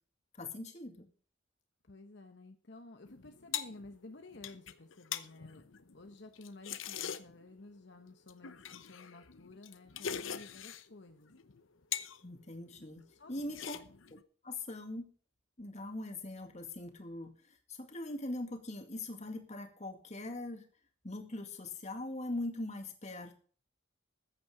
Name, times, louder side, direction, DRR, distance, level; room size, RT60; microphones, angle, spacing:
voice 1, 0.4-1.1 12.2-13.0 13.3-13.8 14.4-15.1 15.6-20.7 21.0-23.3, left 2 dB, 35° left, 5 dB, 2.1 m, -41 dB
voice 2, 1.8-5.6 5.9-11.3 13.1-13.3 13.7-13.8, left 2 dB, 60° left, 5 dB, 1.1 m, -53 dB
sound 1, 3.0-7.5 8.3-10.9 11.3-12.2 12.5-13.0 13.4-14.2, left 8 dB, 85° left, 0.9 m, -43 dB
14.5 x 9.3 x 5.0 m, 0.42 s
head